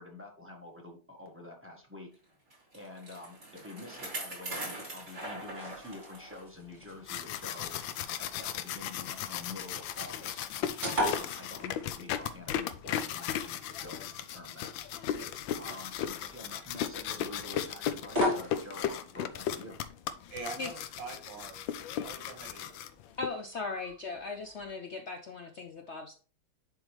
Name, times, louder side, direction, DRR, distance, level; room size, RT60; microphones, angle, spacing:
voice 1, 0.0-2.1 2.7-7.7 8.2-10.5 11.0-14.7 15.5-19.8, left 2 dB, 10° right, 1 dB, 1.0 m, -47 dB
Bicycle, 2.5-6.4 6.9-7.0 7.8-7.9, right 1 dB, 40° right, 3.7 m, -42 dB
sound 1, 5.0-24.7, equal, 25° right, 2.7 m, -41 dB
sound 2, 6.8-23.3, left 10 dB, 85° left, 1.4 m, -36 dB
voice 2, 20.3-21.6 22.0-22.7, right 4 dB, 75° right, 3 dB, 2.3 m, -44 dB
voice 3, 23.2-26.1, left 3 dB, 70° left, 4 dB, 0.6 m, -38 dB
10.5 x 3.6 x 3.1 m, 0.39 s
omnidirectional pair, 2.0 m